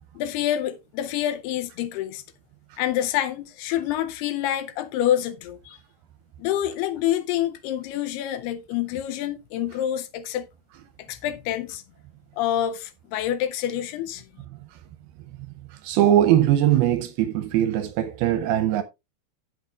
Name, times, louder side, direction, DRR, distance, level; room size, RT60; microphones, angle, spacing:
voice 1, 0.2-2.2 2.8-5.8 6.4-10.5 11.1-11.8 12.4-14.2, left 11 dB, 80° left, 2.5 m, -27 dB
voice 2, 15.8-18.8, right 12 dB, 80° right, 2.4 m, -20 dB
16.0 x 6.1 x 2.4 m
omnidirectional pair, 4.9 m